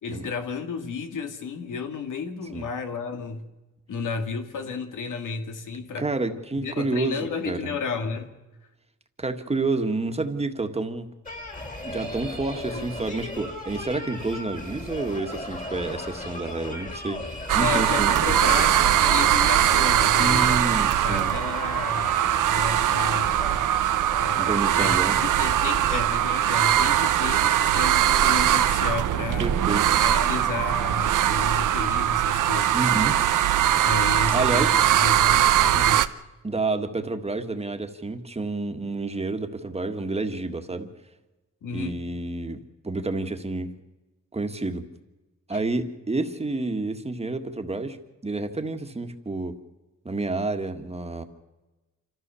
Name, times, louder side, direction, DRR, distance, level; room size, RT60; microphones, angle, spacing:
voice 1, 0.0-3.5 3.9-6.1 6.6-8.3 12.7-12.9 17.6-20.7 21.0-22.2 22.4-23.7 24.2-24.5 24.8-25.0 25.4-29.5 30.0-33.1 33.8-36.1 41.6-42.0 45.5-45.6, left 5 dB, 90° left, 6 dB, 2.2 m, -32 dB
voice 2, 6.0-7.7 9.2-11.1 11.8-18.2 18.5-18.7 20.2-21.3 24.4-25.2 29.4-30.0 32.7-33.2 34.3-34.8 36.4-40.9 41.7-43.8 44.3-44.9 45.5-48.0 48.2-49.6 50.1-51.2, right 3 dB, 20° right, 6 dB, 1.6 m, -29 dB
sound 1, 11.2-26.1, left 1 dB, 25° left, 2.8 m, -38 dB
sound 2, 17.5-36.1, right 11 dB, 85° right, 0.8 m, -21 dB
27.5 x 14.5 x 7.0 m, 1.1 s
wide cardioid pair, 120°, 30 cm